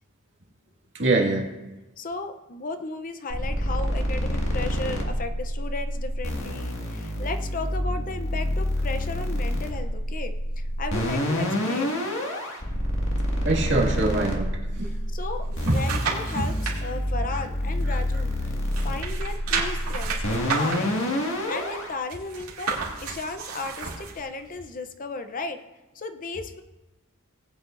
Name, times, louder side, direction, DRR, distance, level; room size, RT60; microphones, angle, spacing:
voice 1, 0.9-1.5 13.4-14.5 14.8-14.9 15.7-15.8 16.4-16.5, right 2 dB, 55° right, -1 dB, 1.9 m, -23 dB
voice 2, 2.0-12.0 14.8-18.6 18.8-21.0 21.5-25.6 25.9-26.6, left 3 dB, 40° left, 8 dB, 0.6 m, -35 dB
sound 1, 3.3-21.9, equal, 60° left, 1.9 m, -28 dB
sound 2, 15.2-16.8 17.3-18.4 18.7-24.2 24.7-24.8, right 5 dB, 75° right, 2.3 m, -32 dB
19.0 x 8.7 x 2.5 m, 1.1 s
head